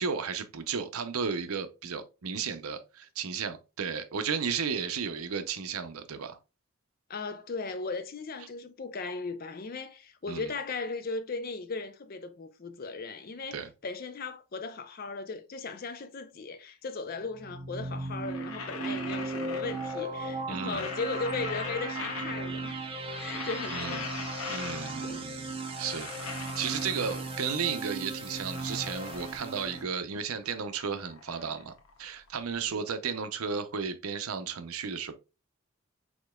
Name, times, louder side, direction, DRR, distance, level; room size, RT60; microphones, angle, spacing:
voice 1, 0.0-6.4 10.3-10.5 13.5-13.7 20.5-20.9 23.7-24.1 24.5-31.7 32.0-35.1, right 6 dB, 85° right, 0.6 m, -34 dB
voice 2, 7.1-24.1 25.0-25.3 32.7-32.8, left 4 dB, 45° left, 0.5 m, -37 dB
sound 1, 17.3-29.8, right 2 dB, 25° right, 0.6 m, -37 dB
sound 2, 18.0-20.2 20.5-22.7 23.0-25.2 25.5-27.6 28.0-30.0 30.3-32.5, left 5 dB, 80° left, 0.7 m, -42 dB
5.0 x 3.8 x 2.2 m
head